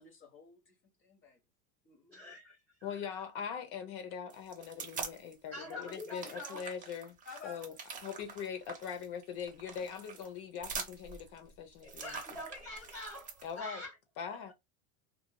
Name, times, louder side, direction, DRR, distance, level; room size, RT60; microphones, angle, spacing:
voice 1, 0.0-1.4 1.8-2.3 7.2-7.7, left 4 dB, 30° left, 1.1 m, -53 dB
voice 2, 2.1-2.6 3.0-3.2 5.5-6.7 11.8-14.0 14.3-14.5, left 1 dB, 5° left, 0.9 m, -45 dB
voice 3, 2.8-7.2 7.4-7.7 8.0-12.2 13.4-13.8 14.2-14.5, left 7 dB, 55° left, 0.9 m, -41 dB
sound 1, 4.3-5.3 5.7-13.5, right 5 dB, 20° right, 0.6 m, -45 dB
3.0 x 2.5 x 2.2 m
supercardioid pair, 140°, 44 cm